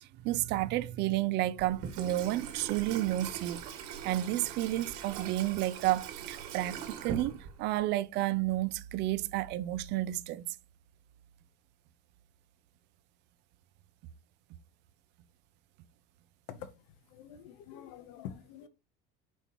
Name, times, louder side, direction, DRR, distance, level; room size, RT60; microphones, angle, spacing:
voice 1, 0.2-3.6 4.0-10.4, right 15 dB, 60° right, 0.5 m, -31 dB
Water tap faucet / Sink (filling or washing), 1.6-7.8, right 8 dB, 80° right, 2.1 m, -42 dB
voice 2, 17.1-18.7, left 9 dB, 80° left, 1.0 m, -46 dB
6.1 x 5.3 x 3.0 m
cardioid pair, 135°, 20 cm